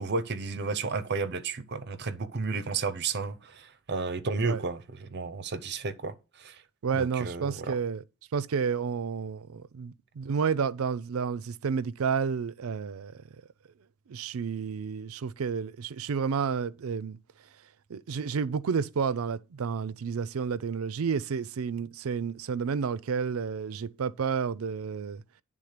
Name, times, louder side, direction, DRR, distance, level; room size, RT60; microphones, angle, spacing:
voice 1, 0.0-6.6 7.0-7.8, right 4 dB, 55° right, 0.7 m, -32 dB
voice 2, 6.8-8.0 8.3-13.2 14.1-17.2 17.9-25.2, right 6 dB, 90° right, 0.4 m, -30 dB
10.0 x 3.6 x 6.5 m
head